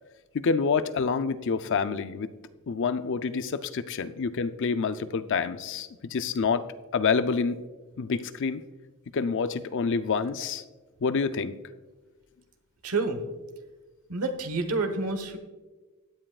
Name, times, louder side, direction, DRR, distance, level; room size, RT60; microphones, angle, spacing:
voice 1, 0.3-2.3 2.7-6.7 6.9-7.6 8.0-8.6 9.1-10.6 11.0-11.5, left 5 dB, 55° left, 12 dB, 0.5 m, -27 dB
voice 2, 12.8-13.2 14.1-15.4, right 3 dB, 85° right, 8 dB, 1.2 m, -28 dB
16.0 x 9.9 x 2.4 m, 1.2 s
head